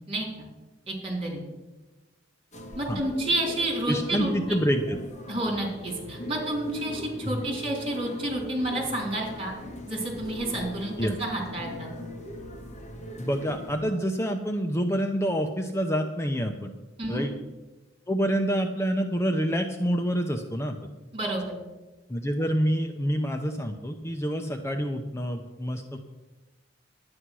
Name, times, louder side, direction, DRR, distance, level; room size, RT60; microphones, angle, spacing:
voice 1, 0.1-0.5 0.9-1.4 2.7-4.6 5.3-9.5 9.9-11.9 17.0-17.2 21.1-21.5, right 1 dB, 30° right, -1 dB, 3.9 m, -30 dB
sound 1, 2.5-13.8, equal, 40° left, 1.6 m, -40 dB
voice 2, 3.9-5.0 7.3-7.4 11.0-11.1 13.2-16.7 17.1-17.3 18.1-20.7 22.1-26.0, equal, 15° left, 5 dB, 0.7 m, -27 dB
11.5 x 9.7 x 6.1 m, 1.1 s
head